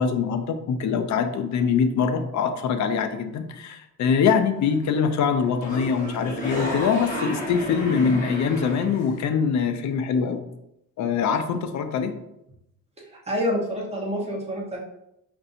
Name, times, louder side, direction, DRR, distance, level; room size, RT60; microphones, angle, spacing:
voice 1, 0.0-10.4 11.0-12.1, left 6 dB, 55° left, 8 dB, 0.5 m, -23 dB
sound 1, 4.6-5.0 5.3-9.2, left 1 dB, 25° left, 1.1 m, -32 dB
voice 2, 13.0-14.8, equal, 20° right, -3 dB, 1.0 m, -28 dB
5.3 x 2.6 x 2.6 m, 0.84 s
cardioid pair, 125°, 34 cm